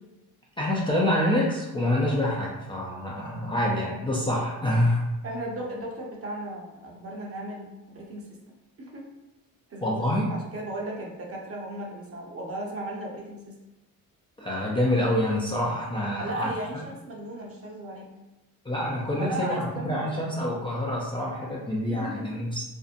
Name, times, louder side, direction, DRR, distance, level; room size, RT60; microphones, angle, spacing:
voice 1, 0.6-5.0 9.8-10.3 14.4-16.5 18.7-22.6, left 1 dB, 15° left, -5 dB, 0.3 m, -26 dB
voice 2, 5.2-8.3 8.8-9.0 9.7-13.5 16.2-18.1 19.2-20.2 21.9-22.4, right 1 dB, 40° right, -2 dB, 0.7 m, -36 dB
2.6 x 2.0 x 2.5 m, 1.0 s
cardioid pair, 85°, 36 cm